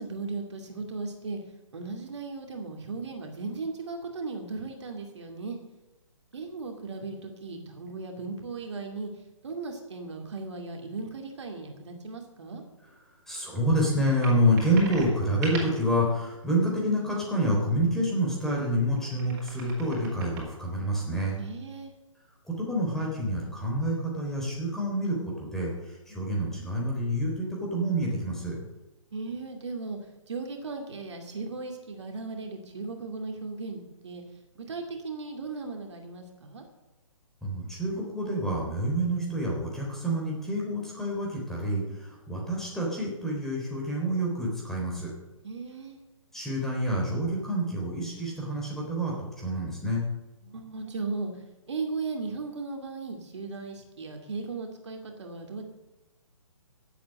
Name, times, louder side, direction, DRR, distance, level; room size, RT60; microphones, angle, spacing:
voice 1, 0.0-1.4 1.7-5.6 6.3-9.1 9.4-12.6 21.4-21.9 29.1-30.0 30.3-34.2 34.6-36.6 45.4-46.0 50.4-51.3 51.7-55.7, right 3 dB, 55° right, 3 dB, 2.6 m, -36 dB
voice 2, 13.3-21.4 22.5-28.6 37.4-45.1 46.3-50.0, equal, ahead, -3 dB, 3.6 m, -28 dB
sound 1, 14.2-15.9 18.7-20.4, right 3 dB, 30° right, 4.4 m, -40 dB
16.0 x 8.5 x 6.6 m, 1.1 s
figure-of-eight pair, 135°, 17 cm